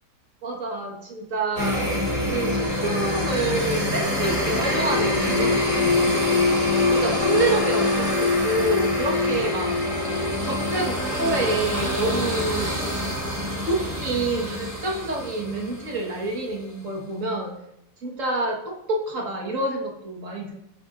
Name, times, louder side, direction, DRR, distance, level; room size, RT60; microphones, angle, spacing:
voice 1, 0.4-2.0 2.3-6.2 6.9-9.8 10.4-12.8 13.7-17.6 18.0-20.6, right 2 dB, 55° right, 1 dB, 1.8 m, -28 dB
sound 1, 1.6-16.3, left 2 dB, 35° right, 3.3 m, -24 dB
18.5 x 7.5 x 2.5 m, 0.81 s
omnidirectional pair, 1.7 m